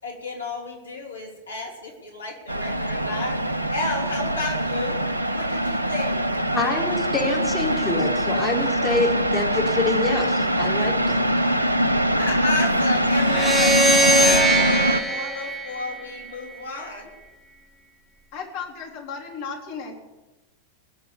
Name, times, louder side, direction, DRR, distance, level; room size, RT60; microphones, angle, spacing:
voice 1, 0.0-6.2 11.4-11.8 12.2-17.2, left 3 dB, 75° left, -1 dB, 3.4 m, -32 dB
sound 1, 2.5-15.0, right 1 dB, 80° right, 0.7 m, -23 dB
voice 2, 6.5-11.2, left 3 dB, 10° left, -3 dB, 3.7 m, -26 dB
sound 2, 13.2-16.5, right 1 dB, 10° right, 1.2 m, -21 dB
voice 3, 18.3-19.9, left 5 dB, 50° left, 0 dB, 4.0 m, -34 dB
20.5 x 7.6 x 8.4 m, 1.1 s
figure-of-eight pair, 90°, 0 cm